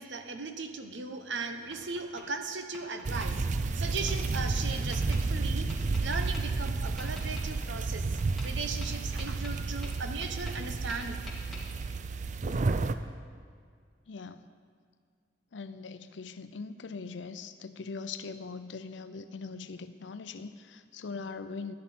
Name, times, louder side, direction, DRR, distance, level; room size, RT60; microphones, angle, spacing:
voice 1, 0.0-5.7 6.0-11.3, right 4 dB, 80° right, 7 dB, 0.9 m, -38 dB
Tap, 1.2-2.3 2.7-3.3 4.1-4.2 4.9-5.2 5.7-6.4 7.0-7.5 8.2-8.5 8.8-10.6 10.9-11.6, left 1 dB, ahead, 2.2 m, -47 dB
sound 1, 3.0-12.9, right 3 dB, 40° right, 0.4 m, -31 dB
voice 2, 14.1-14.5 15.5-21.7, left 4 dB, 80° left, 11 dB, 0.6 m, -41 dB
11.5 x 10.5 x 4.3 m, 2.1 s
head